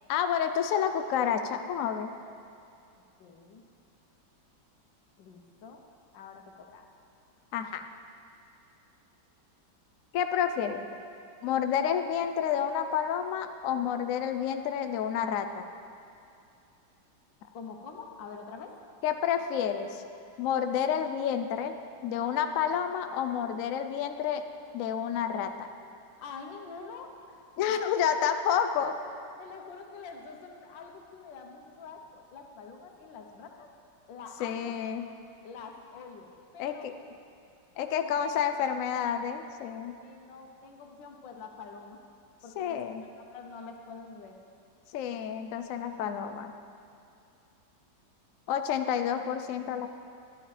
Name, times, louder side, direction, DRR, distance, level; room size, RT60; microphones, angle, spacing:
voice 1, 0.1-2.1 7.5-7.8 10.1-10.9 11.4-15.7 19.0-20.0 20.4-21.7 22.0-24.4 24.7-25.7 27.6-28.9 34.4-35.1 36.6-36.9 37.8-39.9 42.6-43.0 44.9-46.5 48.5-49.9, left 8 dB, 70° left, 8 dB, 0.7 m, -29 dB
voice 2, 3.2-3.6 5.2-5.8 6.1-6.8 17.5-18.8 26.2-27.7 29.4-33.7 34.1-34.8 35.4-36.8 37.9-38.4 40.0-42.0 42.4-43.1 43.3-44.4, left 5 dB, 90° left, 3 dB, 1.6 m, -46 dB
11.0 x 11.0 x 3.3 m, 2.6 s
omnidirectional pair, 1.9 m